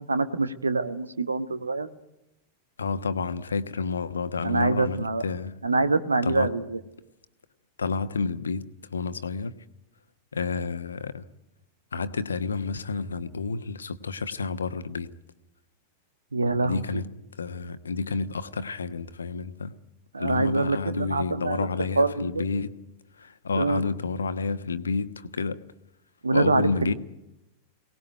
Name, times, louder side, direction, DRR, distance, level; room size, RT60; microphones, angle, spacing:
voice 1, 0.1-1.9 4.4-5.2 5.6-6.8 16.3-17.0 20.1-21.7 22.0-22.4 23.6-23.8 26.2-26.9, right 3 dB, 75° right, 12 dB, 1.4 m, -25 dB
voice 2, 2.8-5.6 6.2-6.5 7.8-9.5 10.3-11.2 11.9-15.1 16.6-17.1 17.4-19.7 20.2-22.7 23.2-25.6 26.3-26.9, left 4 dB, 70° left, 11 dB, 1.2 m, -30 dB
23.5 x 18.5 x 9.3 m, 0.88 s
figure-of-eight pair, 90°, 0 cm